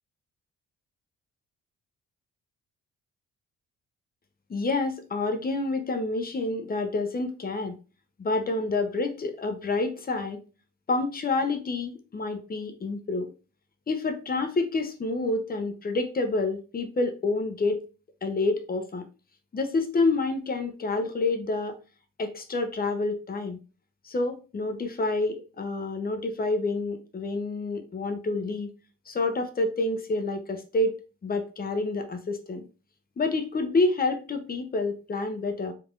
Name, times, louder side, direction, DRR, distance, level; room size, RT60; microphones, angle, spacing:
voice 1, 4.5-7.8 8.2-10.4 10.9-13.3 13.9-17.8 18.2-19.1 19.5-21.7 22.2-23.6 24.0-28.7 29.1-32.6 33.2-35.7, left 3 dB, 30° left, 7 dB, 0.7 m, -28 dB
3.4 x 3.3 x 2.4 m, 0.33 s
cardioid pair, 90°, 30 cm